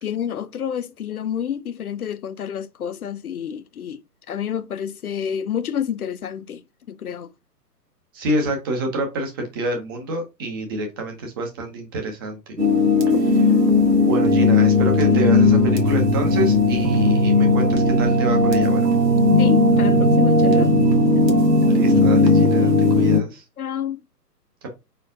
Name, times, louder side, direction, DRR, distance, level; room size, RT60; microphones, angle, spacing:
voice 1, 0.0-4.0 4.3-6.6 6.9-7.3 19.4-20.8 23.6-24.0, left 8 dB, 65° left, 0.6 m, -29 dB
voice 2, 8.1-12.6 13.2-13.5 13.9-18.9 21.7-23.4, right 1 dB, 15° right, 0.6 m, -28 dB
sound 1, 12.6-23.2, left 2 dB, 85° right, 1.5 m, -16 dB
4.9 x 4.3 x 2.5 m
figure-of-eight pair, 125°, 48 cm